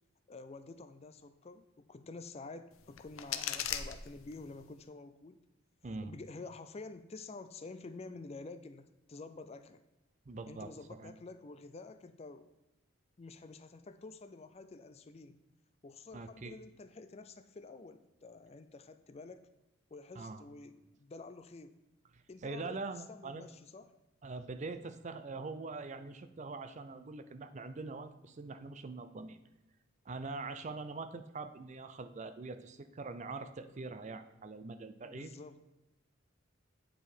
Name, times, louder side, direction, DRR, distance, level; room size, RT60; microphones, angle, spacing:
voice 1, 0.3-5.4 6.0-9.8 10.5-12.5 13.2-15.4 15.8-19.5 19.9-21.7 22.3-22.8 23.1-23.9 35.0-35.7, left 3 dB, 30° left, 10 dB, 0.4 m, -49 dB
sound 1, 2.7-4.7, left 9 dB, 85° left, 0.6 m, -40 dB
voice 2, 10.3-10.7 11.0-11.1 16.1-16.6 20.2-20.4 22.1-23.5 24.2-29.4 30.1-35.3, right 3 dB, 35° right, 10 dB, 0.5 m, -43 dB
8.8 x 5.1 x 4.4 m, 1.0 s
head